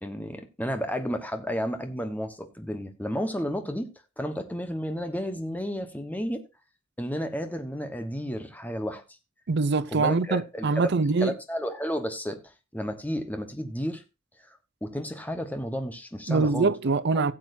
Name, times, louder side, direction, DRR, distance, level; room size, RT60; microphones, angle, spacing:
voice 1, 0.0-3.9 4.2-6.4 7.0-9.0 9.9-14.0 14.8-16.7, equal, 10° left, 1.2 m, -32 dB
voice 2, 9.5-11.3 16.3-17.3, right 3 dB, 55° right, 0.6 m, -24 dB
17.0 x 7.4 x 2.7 m
head